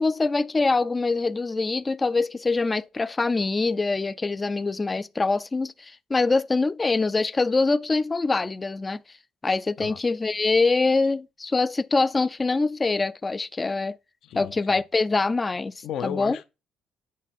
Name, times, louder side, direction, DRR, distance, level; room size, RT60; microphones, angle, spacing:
voice 1, 0.0-9.0 9.4-13.9 14.3-15.7 16.0-16.4, left 3 dB, 20° left, 0.4 m, -24 dB
voice 2, 14.2-14.8 15.8-16.4, left 9 dB, 65° left, 0.6 m, -34 dB
8.3 x 4.3 x 4.2 m
cardioid pair, 105°, 0 cm